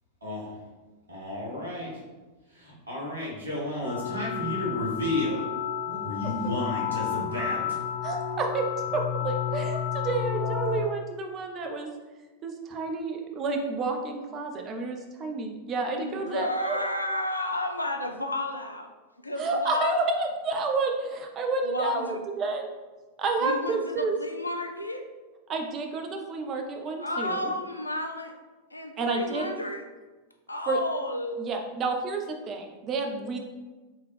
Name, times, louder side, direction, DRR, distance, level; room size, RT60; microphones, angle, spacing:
voice 1, 0.2-0.5 1.1-1.9 2.9-5.4 5.9-7.6, left 1 dB, 75° right, -5 dB, 1.3 m, -32 dB
sound 1, 3.8-10.8, left 9 dB, 40° left, 0.9 m, -31 dB
voice 2, 8.0-8.7 8.9-11.9 12.4-16.8 19.4-22.7 23.2-24.1 25.5-27.5 29.0-29.5 30.7-30.8 31.4-33.4, right 3 dB, 30° right, 3 dB, 0.6 m, -30 dB
voice 3, 16.0-18.9 19.2-20.0 21.6-22.2 23.4-25.0 27.0-28.3 28.7-29.8 30.5-31.4, left 1 dB, 85° left, 4 dB, 0.4 m, -32 dB
3.5 x 3.2 x 3.2 m, 1.2 s
figure-of-eight pair, 90°, 0 cm